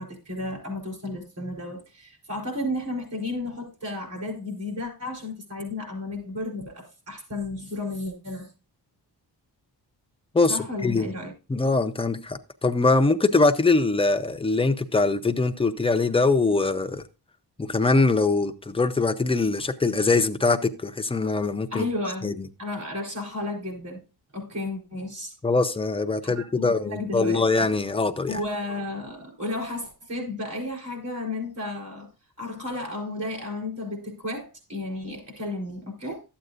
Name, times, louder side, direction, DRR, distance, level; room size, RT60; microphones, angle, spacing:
voice 1, 0.0-8.5 10.5-11.3 19.6-19.7 21.7-22.3 22.6-24.0 24.3-25.3 26.2-27.7 28.3-32.1 32.4-36.2, left 2 dB, 45° right, 4.3 m, -33 dB
voice 2, 10.8-11.1 11.5-17.0 17.6-21.8 22.2-22.5 25.4-28.4, left 3 dB, 15° left, 0.4 m, -22 dB
12.5 x 7.9 x 2.5 m
wide cardioid pair, 170°, 41 cm